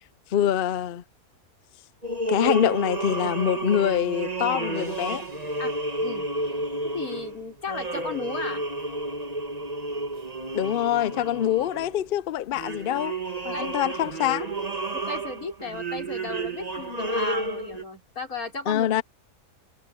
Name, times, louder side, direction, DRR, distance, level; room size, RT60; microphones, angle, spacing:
voice 1, 0.3-1.0 2.3-5.2 10.5-13.2 13.4-14.5 18.7-19.0, left 11 dB, 85° left, 0.4 m, -25 dB
sound 1, 2.0-12.1 12.5-17.8, right 2 dB, 25° right, 2.2 m, -31 dB
sound 2, 4.7-6.8, right 1 dB, 40° right, 7.0 m, -57 dB
voice 2, 5.6-6.3 6.8-8.7 13.5-13.9 14.9-18.9, left 3 dB, 65° left, 5.9 m, -35 dB
omnidirectional pair, 1.6 m